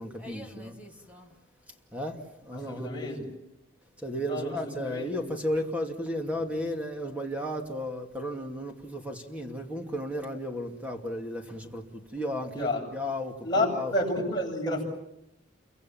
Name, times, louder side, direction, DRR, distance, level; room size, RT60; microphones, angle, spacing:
voice 1, 0.0-1.3 1.9-3.3 4.0-13.9, equal, 5° right, 2.5 m, -34 dB
voice 2, 2.5-3.2 4.3-4.5 4.8-5.2 12.6-12.8 13.4-14.8, left 1 dB, 20° left, 7.8 m, -29 dB
29.0 x 24.5 x 7.2 m
head